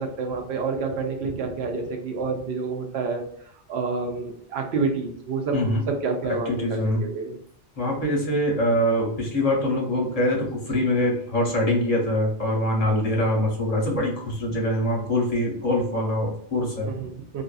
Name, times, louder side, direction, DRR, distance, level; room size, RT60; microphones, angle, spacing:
voice 1, 0.0-3.2 3.7-5.7 6.0-7.4 14.5-14.6 16.8-17.4, right 4 dB, 70° right, 3 dB, 0.8 m, -28 dB
voice 2, 5.5-5.8 6.5-7.1 7.8-16.9, left 1 dB, 35° left, -2 dB, 0.8 m, -24 dB
2.5 x 2.5 x 2.2 m, 0.65 s
omnidirectional pair, 1.2 m